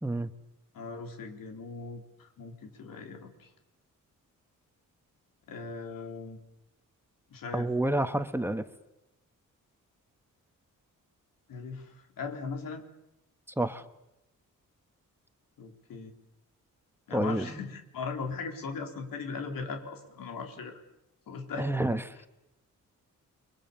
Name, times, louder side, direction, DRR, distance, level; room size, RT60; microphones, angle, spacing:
voice 1, 0.7-3.5 5.5-6.4 7.3-7.7 11.5-12.8 15.6-16.1 17.1-20.8 21.3-21.8, left 4 dB, 90° left, 4 dB, 4.1 m, -39 dB
voice 2, 7.5-8.6 13.6-13.8 17.1-17.5 21.6-22.3, right 1 dB, 5° right, 9 dB, 1.3 m, -29 dB
29.5 x 23.5 x 7.0 m, 0.88 s
cardioid pair, 105°, 33 cm